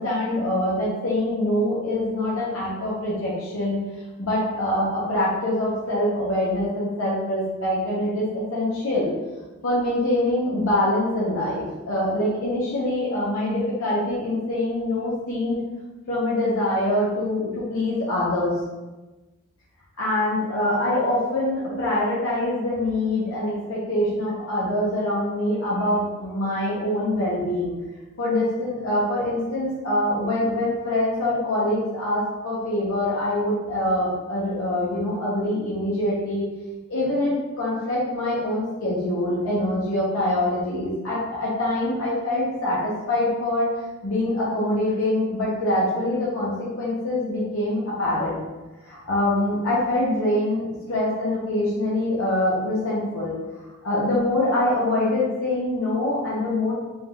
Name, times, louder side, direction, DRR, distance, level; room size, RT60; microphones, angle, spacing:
voice 1, 0.0-3.8 4.2-9.1 9.6-15.6 16.1-18.5 20.0-27.7 28.2-36.4 36.9-43.7 44.0-48.4 48.8-56.7, left 1 dB, 70° left, -8 dB, 1.0 m, -24 dB
3.7 x 2.5 x 3.9 m, 1.1 s
head